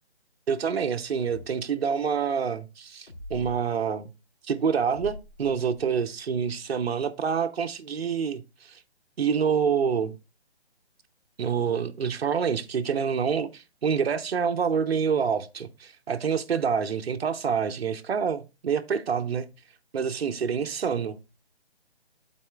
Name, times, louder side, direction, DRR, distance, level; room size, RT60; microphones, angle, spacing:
voice 1, 0.5-4.1 4.5-8.8 9.2-10.1 11.4-19.5 19.9-21.2, right 6 dB, 65° right, 0.8 m, -27 dB
sound 1, 1.2-1.5 3.1-3.6 4.9-6.1, left 1 dB, 55° left, 2.7 m, -42 dB
12.0 x 4.2 x 2.4 m
hypercardioid pair, 170°, 33 cm